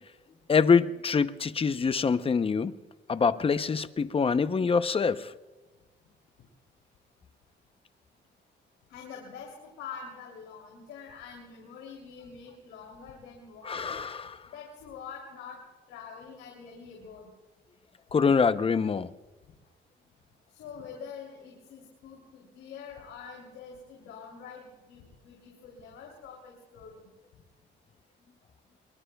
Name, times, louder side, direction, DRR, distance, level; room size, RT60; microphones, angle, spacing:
voice 1, 0.5-2.7 3.1-5.3 13.7-14.4 18.1-19.1, left 5 dB, 30° left, 0.7 m, -25 dB
voice 2, 8.9-13.9 14.4-15.6 15.9-17.3 20.5-27.1, left 6 dB, 90° left, 3.1 m, -45 dB
22.5 x 22.5 x 2.3 m
cardioid pair, 90°, 20 cm